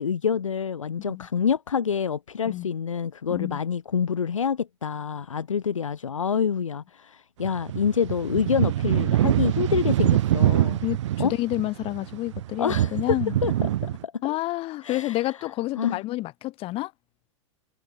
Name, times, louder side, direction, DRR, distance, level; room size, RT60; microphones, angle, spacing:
voice 1, 0.0-10.8 11.2-11.3 12.6-13.2 13.4-14.4 14.8-15.2 15.8-16.0, left 7 dB, 75° left, 3.0 m, -27 dB
sound 1, 7.4-14.0, right 13 dB, 65° right, 0.4 m, -24 dB
voice 2, 10.8-13.4 14.2-16.9, left 18 dB, 35° left, 1.1 m, -29 dB
figure-of-eight pair, 95°, 16 cm